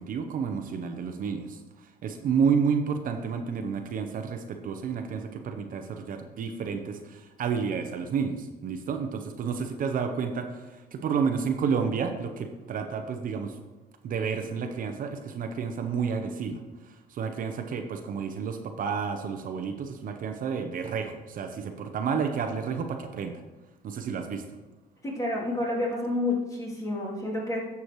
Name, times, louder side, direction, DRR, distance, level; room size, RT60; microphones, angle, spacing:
voice 1, 0.0-1.6 2.0-13.6 14.0-16.6 16.9-23.4 23.8-24.4, right 6 dB, 55° right, 6 dB, 0.8 m, -30 dB
voice 2, 25.0-27.6, left 2 dB, 20° left, -5 dB, 3.0 m, -29 dB
11.5 x 7.0 x 3.1 m, 1.1 s
cardioid pair, 110°, 17 cm